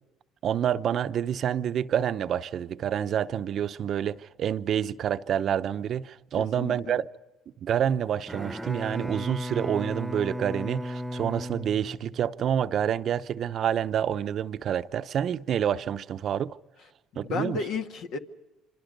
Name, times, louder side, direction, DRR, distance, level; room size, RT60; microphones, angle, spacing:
voice 1, 0.4-7.1 7.6-16.6 17.2-17.6, right 9 dB, 55° right, 0.8 m, -28 dB
voice 2, 6.4-7.0 17.1-18.2, left 5 dB, 70° left, 1.9 m, -33 dB
Bowed string instrument, 8.2-12.5, equal, 5° right, 1.2 m, -35 dB
27.0 x 26.0 x 5.3 m
supercardioid pair, 85°, 0 cm